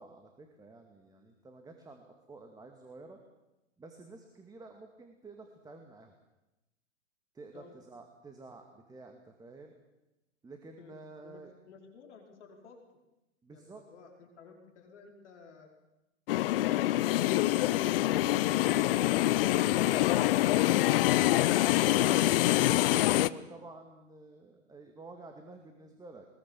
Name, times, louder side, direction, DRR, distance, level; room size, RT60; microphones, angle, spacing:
voice 1, 0.0-3.2 3.8-6.1 7.3-9.7 10.4-11.5 13.4-13.8 17.8-20.7 21.6-26.3, right 3 dB, 10° right, 4 dB, 2.3 m, -50 dB
voice 2, 11.2-12.8 13.5-15.7, left 5 dB, 65° left, 2 dB, 5.1 m, -54 dB
sound 1, 16.3-23.3, left 15 dB, 45° left, 0.8 m, -25 dB
22.5 x 20.5 x 7.4 m, 0.97 s
hypercardioid pair, 120°, 38 cm